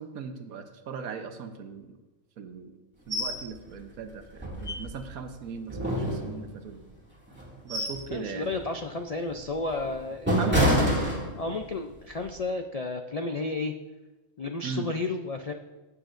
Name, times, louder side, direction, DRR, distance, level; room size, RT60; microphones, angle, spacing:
voice 1, 0.0-2.0 2.4-6.8 7.6-8.5 10.4-11.0 14.6-14.9, right 5 dB, 90° right, 7 dB, 1.4 m, -38 dB
sound 1, 3.1-3.4 3.8-3.9 4.4-5.2 5.7-6.7 7.3-8.1 8.5-8.7 9.3-11.7 12.1-12.3, equal, 10° right, 2.2 m, -27 dB
voice 2, 8.1-11.1 11.4-13.7 14.4-15.5, left 3 dB, 70° left, 5 dB, 0.3 m, -32 dB
16.5 x 7.6 x 2.6 m, 1.1 s
omnidirectional pair, 1.4 m